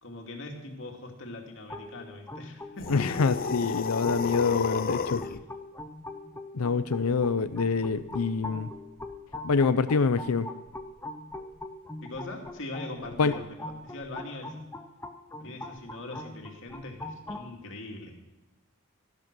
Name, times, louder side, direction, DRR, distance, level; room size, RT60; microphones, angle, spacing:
voice 1, 0.0-3.2 12.0-14.5 15.4-18.1, left 2 dB, 60° left, 1 dB, 2.5 m, -41 dB
sound 1, 1.7-17.5, left 2 dB, 10° left, 0.8 m, -42 dB
sound 2, 2.8-5.4, left 5 dB, 45° left, 0.6 m, -32 dB
voice 2, 2.9-5.2 6.5-8.7 9.4-10.5 13.2-13.3, left 4 dB, 85° left, 12 dB, 0.6 m, -26 dB
13.5 x 12.0 x 6.2 m, 1.1 s
head